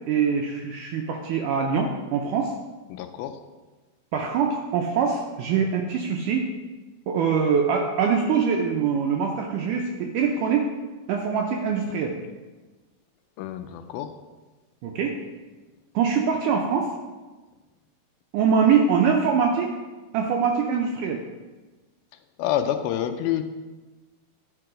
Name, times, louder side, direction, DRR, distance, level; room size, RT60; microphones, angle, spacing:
voice 1, 0.1-2.5 4.1-6.5 7.1-10.7 11.1-12.2 14.8-15.2 16.0-16.9 18.3-19.7 20.1-21.2, right 6 dB, 80° right, 2 dB, 1.9 m, -23 dB
voice 2, 2.9-3.3 13.4-14.1 22.4-23.4, left 11 dB, 80° left, 8 dB, 2.3 m, -27 dB
11.5 x 4.7 x 5.0 m, 1.2 s
omnidirectional pair, 4.3 m